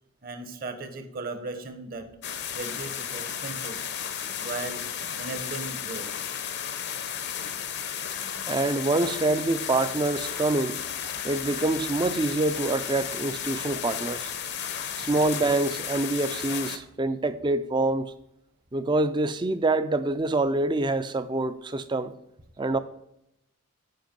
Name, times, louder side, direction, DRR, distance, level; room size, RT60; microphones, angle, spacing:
voice 1, 0.2-2.1 2.5-3.9 4.4-4.8 5.2-6.1, right 3 dB, 40° right, 0.9 m, -37 dB
sound 1, 2.2-16.8, left 8 dB, 50° left, 0.6 m, -34 dB
voice 2, 8.5-10.8 11.2-14.3 15.0-18.1 18.7-22.1 22.6-22.8, right 2 dB, 20° right, 0.4 m, -26 dB
7.8 x 5.2 x 5.2 m
head